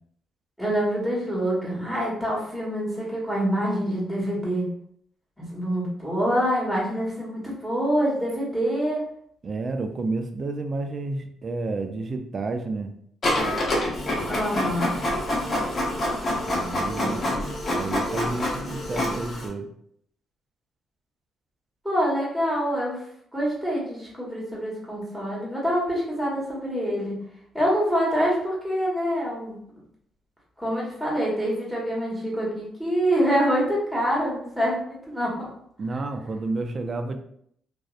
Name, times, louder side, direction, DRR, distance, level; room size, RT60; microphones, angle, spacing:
voice 1, 0.6-4.7 5.4-9.0 14.3-15.0 17.0-17.4 21.8-23.0 23.3-27.2 27.5-29.6 30.6-35.5, equal, ahead, -5 dB, 1.2 m, -26 dB
voice 2, 9.4-12.9 16.5-17.2 17.7-19.7 35.8-37.2, right 3 dB, 40° right, 6 dB, 0.3 m, -30 dB
Printer, 13.2-19.5, left 1 dB, 40° left, 0.7 m, -26 dB
2.5 x 2.0 x 2.4 m, 0.67 s
cardioid pair, 90°, 0 cm